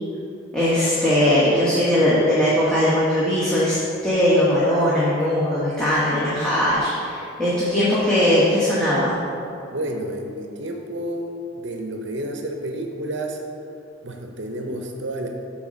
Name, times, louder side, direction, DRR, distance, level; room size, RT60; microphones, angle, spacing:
voice 1, 0.5-3.8 4.0-9.2, left 1 dB, 5° left, -10 dB, 1.0 m, -19 dB
voice 2, 9.7-13.4 14.0-15.3, right 1 dB, 60° right, 3 dB, 0.7 m, -30 dB
8.1 x 3.7 x 6.2 m, 2.8 s
head